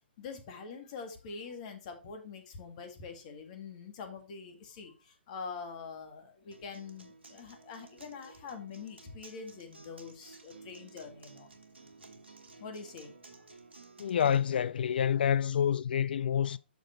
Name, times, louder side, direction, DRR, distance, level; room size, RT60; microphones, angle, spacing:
voice 1, 0.2-11.5 12.6-13.5, left 5 dB, 40° left, 2.0 m, -45 dB
Acoustic guitar, 6.5-14.5, right 3 dB, 85° right, 1.4 m, -54 dB
voice 2, 14.0-16.6, left 8 dB, 55° left, 0.3 m, -28 dB
6.3 x 6.3 x 4.3 m
figure-of-eight pair, 130°, 6 cm